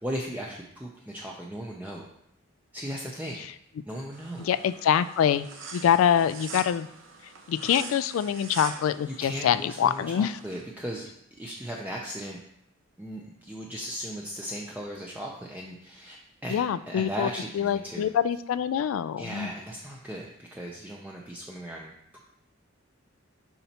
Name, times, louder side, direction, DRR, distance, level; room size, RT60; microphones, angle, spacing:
voice 1, 0.0-2.1 2.7-3.4 3.9-4.5 9.1-11.1 11.4-12.4 13.0-16.2 16.4-18.1 19.2-22.2, equal, 10° right, -2 dB, 0.5 m, -37 dB
sound 1, 4.1-10.6, right 4 dB, 70° right, 0.9 m, -43 dB
voice 2, 4.4-5.5 5.7-6.9 7.5-10.4 16.5-17.3 17.5-19.5, left 9 dB, 90° left, 14 dB, 0.3 m, -25 dB
7.0 x 5.5 x 2.9 m, 0.73 s
head